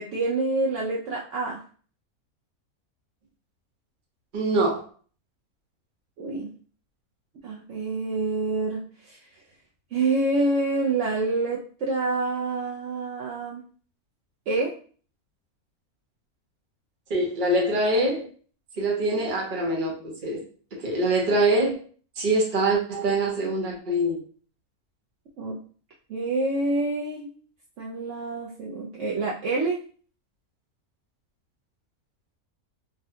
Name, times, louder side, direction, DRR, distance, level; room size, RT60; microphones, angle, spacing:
voice 1, 0.0-1.6 6.2-6.5 7.4-9.2 9.9-13.6 14.5-14.7 25.4-25.6 26.1-27.3 27.8-29.8, right 2 dB, 65° right, -3 dB, 0.8 m, -27 dB
voice 2, 4.3-4.8 17.1-18.3 18.8-20.4 20.8-21.8 22.2-24.2, right 1 dB, 40° right, -1 dB, 0.9 m, -24 dB
3.5 x 2.2 x 2.7 m, 0.42 s
omnidirectional pair, 1.5 m